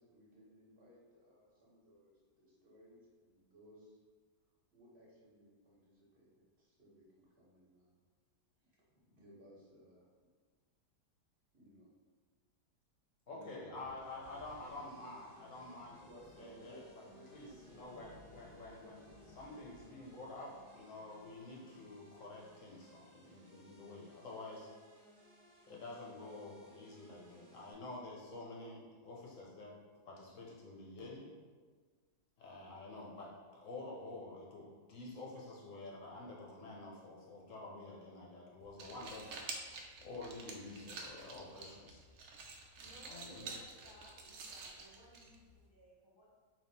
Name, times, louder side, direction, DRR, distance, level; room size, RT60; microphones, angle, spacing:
voice 1, 0.0-4.0 4.7-8.0 8.6-10.1 11.5-11.9 13.3-13.9 14.7-14.8 16.0-18.0 18.3-18.4 18.7-19.8 21.6-21.9, equal, 40° right, -7 dB, 1.3 m, -61 dB
voice 2, 13.3-16.1 16.4-16.8 17.3-19.0 19.4-24.7 25.7-29.7 30.0-31.3 32.4-39.3 40.0-42.0 43.1-43.4, left 2 dB, 60° left, -3 dB, 1.0 m, -49 dB
Thunder, 13.7-22.4, left 1 dB, 80° left, 0.5 m, -64 dB
sound 1, 14.0-27.7, right 1 dB, 60° right, 1.4 m, -63 dB
sound 2, 38.6-45.6, right 3 dB, 80° right, 0.6 m, -49 dB
voice 3, 42.8-46.2, equal, 25° right, -9 dB, 0.6 m, -61 dB
3.5 x 2.7 x 4.1 m, 1.5 s
omnidirectional pair, 1.8 m